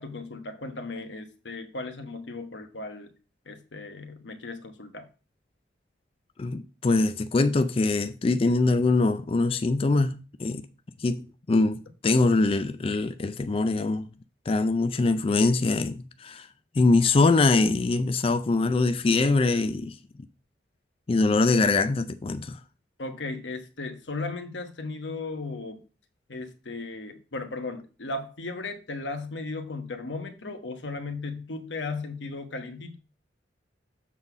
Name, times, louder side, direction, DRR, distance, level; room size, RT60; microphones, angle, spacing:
voice 1, 0.0-3.1 3.5-5.1 23.0-25.8 26.3-33.0, left 3 dB, 85° left, 1.2 m, -36 dB
voice 2, 6.4-10.6 11.0-14.1 14.5-16.5 16.8-20.0 21.1-22.6, left 3 dB, 30° left, 0.4 m, -23 dB
7.4 x 4.0 x 5.9 m
head